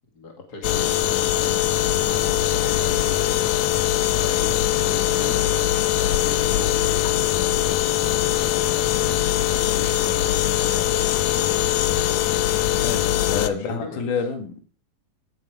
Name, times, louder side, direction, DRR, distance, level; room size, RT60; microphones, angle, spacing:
voice 1, 0.1-1.4 1.9-3.9 4.2-12.1 13.2-14.1, left 2 dB, 30° left, 2 dB, 2.1 m, -39 dB
sound 1, 0.6-13.5, left 13 dB, 80° left, 1.6 m, -21 dB
voice 2, 12.8-14.6, left 5 dB, 60° left, 5 dB, 3.4 m, -28 dB
17.0 x 9.5 x 4.9 m, 0.39 s
omnidirectional pair, 4.3 m